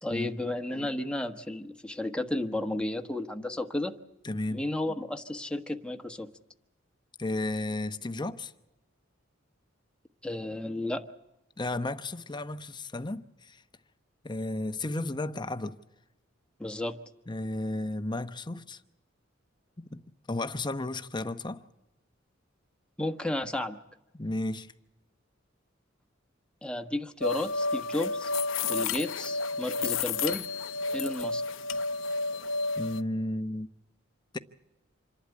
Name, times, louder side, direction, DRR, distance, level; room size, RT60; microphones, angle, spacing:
voice 1, 0.0-3.9 4.5-6.3 10.2-11.0 16.6-16.9 23.0-23.8 26.6-28.3 28.6-30.4 30.9-31.4, left 1 dB, 5° left, 1.3 m, -33 dB
voice 2, 4.2-4.7 7.2-8.5 11.6-13.6 14.2-15.8 17.3-18.8 19.8-20.0 20.3-21.6 24.1-24.7 32.8-33.7 34.3-34.4, left 2 dB, 25° left, 0.9 m, -33 dB
sound 1, 27.2-33.0, left 3 dB, 70° left, 0.8 m, -31 dB
27.0 x 11.5 x 9.9 m
head